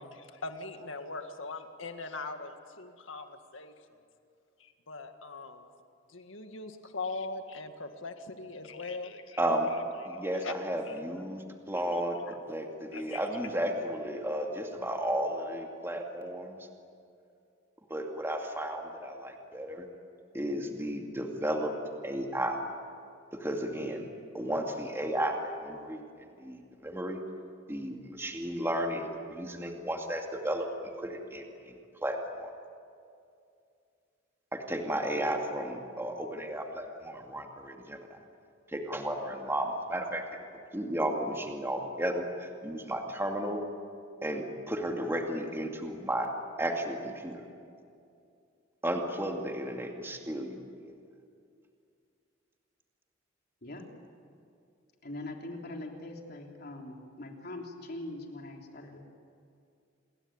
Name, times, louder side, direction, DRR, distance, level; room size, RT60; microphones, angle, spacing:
voice 1, 0.0-3.7 4.6-5.7 6.1-9.4 9.7-11.0 11.9-12.4 12.9-13.2, left 3 dB, 85° left, 6 dB, 2.0 m, -41 dB
voice 2, 9.4-9.7 10.0-12.2 12.5-16.6 17.9-19.9 20.3-21.7 22.0-22.6 23.3-24.0 24.3-26.0 26.4-27.2 27.7-30.7 31.0-31.7 32.0-32.5 34.5-38.0 38.7-40.2 40.7-43.6 44.2-46.3 46.6-47.4 48.8-50.6, right 1 dB, 15° right, 2 dB, 2.4 m, -33 dB
voice 3, 55.0-59.0, left 2 dB, 55° left, 1 dB, 3.5 m, -42 dB
28.0 x 21.5 x 8.9 m, 2.4 s
head